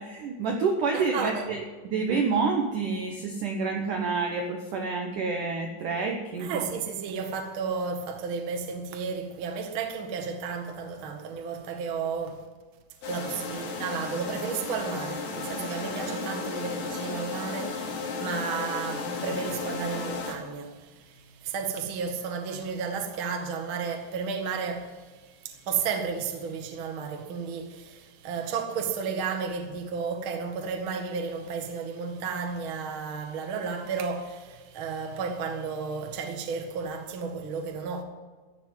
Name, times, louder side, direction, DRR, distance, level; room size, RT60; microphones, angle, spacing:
voice 1, 0.0-6.6 16.1-16.2, right 4 dB, 90° right, 1.8 m, -28 dB
voice 2, 0.9-1.5 6.4-12.5 13.1-38.0, right 5 dB, 75° right, 1.1 m, -33 dB
sound 1, 13.0-20.4, left 3 dB, 70° left, 4.9 m, -34 dB
15.5 x 7.5 x 9.7 m
omnidirectional pair, 5.6 m